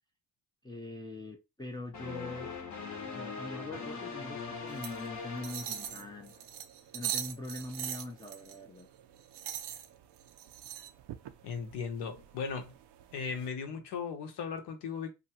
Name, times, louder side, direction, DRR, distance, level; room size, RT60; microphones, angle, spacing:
voice 1, 0.6-2.5 3.1-6.3 6.9-8.9, left 2 dB, 10° left, 0.5 m, -43 dB
sound 1, 1.9-6.4, left 5 dB, 40° left, 0.9 m, -41 dB
sound 2, 4.7-13.5, right 10 dB, 70° right, 0.5 m, -42 dB
voice 2, 11.4-12.7 13.1-15.1, left 6 dB, 70° left, 0.9 m, -37 dB
2.6 x 2.2 x 2.9 m
supercardioid pair, 75°, 43 cm